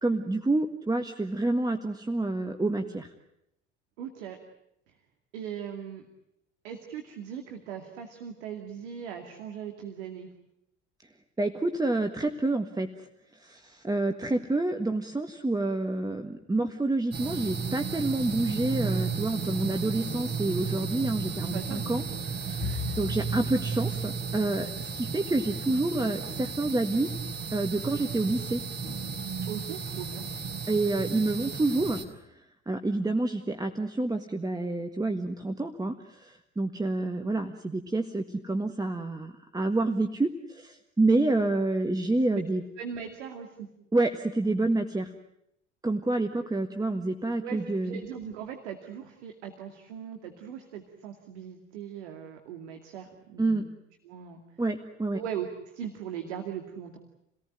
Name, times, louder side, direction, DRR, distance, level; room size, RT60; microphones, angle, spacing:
voice 1, 0.0-3.1 11.4-13.1 13.3-22.6 23.0-27.1 27.5-28.6 30.7-32.0 32.3-32.4 32.7-42.6 43.9-45.1 45.8-48.0 53.4-53.7 54.6-55.2, right 2 dB, 10° right, 6 dB, 1.6 m, -28 dB
voice 2, 4.0-4.4 5.3-6.0 6.6-10.3 21.4-21.8 22.6-23.0 29.5-30.2 42.3-42.4 42.8-43.7 47.4-53.7 54.0-54.4 55.1-57.0, right 8 dB, 65° right, 4 dB, 2.5 m, -39 dB
sound 1, 17.1-32.0, right 5 dB, 30° right, 4.6 m, -34 dB
Bowed string instrument, 22.6-27.0, left 15 dB, 55° left, 1.0 m, -42 dB
29.5 x 18.5 x 9.2 m, 0.80 s
figure-of-eight pair, 60°, 35 cm